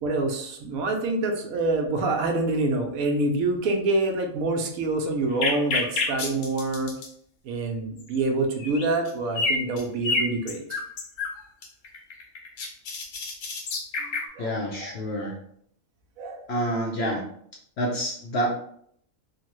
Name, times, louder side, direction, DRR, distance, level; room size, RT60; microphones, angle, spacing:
voice 1, 0.0-6.9 7.4-10.8 14.4-14.9 15.2-15.3 16.2-16.4, right 2 dB, 75° right, 2 dB, 1.0 m, -26 dB
sound 1, 5.4-7.1 8.0-8.1 8.6-9.1 9.4-11.3 11.6-14.3, left 3 dB, 80° left, 1.1 m, -28 dB
voice 2, 14.4-15.4 16.5-17.2 17.8-18.5, equal, 65° left, -1 dB, 0.7 m, -27 dB
3.2 x 2.1 x 2.9 m, 0.65 s
omnidirectional pair, 1.5 m